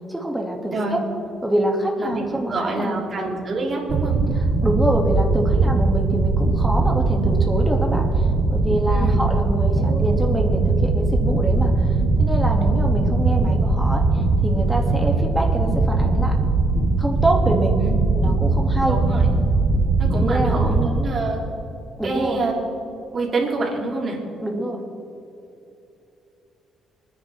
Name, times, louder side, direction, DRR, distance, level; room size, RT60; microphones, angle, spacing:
voice 1, 0.1-1.0 1.4-3.0 4.6-16.4 17.0-17.8 18.1-19.0 20.2-20.7 22.0-22.4 24.4-24.8, right 1 dB, 5° right, 0 dB, 2.7 m, -25 dB
voice 2, 2.5-4.2 8.9-9.4 9.8-10.0 17.8-18.2 18.8-19.3 20.0-21.4 22.0-22.5 23.1-24.2, right 3 dB, 45° right, -2 dB, 3.8 m, -26 dB
sound 1, 3.9-20.9, right 3 dB, 70° right, 2.7 m, -20 dB
27.0 x 10.5 x 3.7 m, 2.8 s
cardioid pair, 90°, 0 cm